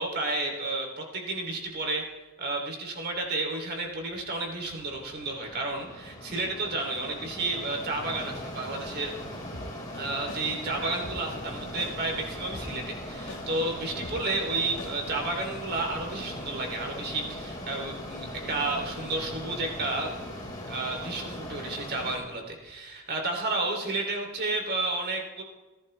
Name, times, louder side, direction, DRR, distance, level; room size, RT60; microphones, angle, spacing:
voice 1, 0.0-2.0 2.4-9.1 9.9-20.2 20.7-25.4, right 2 dB, 50° right, 2 dB, 3.0 m, -31 dB
Mechanisms, 4.2-22.2, left 1 dB, 20° left, 4.7 m, -39 dB
sound 1, 9.5-9.7 10.3-10.4 11.0-11.2 11.8-11.9 12.5-12.7 13.3-13.4 14.0-14.2 14.8-14.9, left 2 dB, 90° left, 2.5 m, -41 dB
29.5 x 11.5 x 3.3 m, 1.2 s
head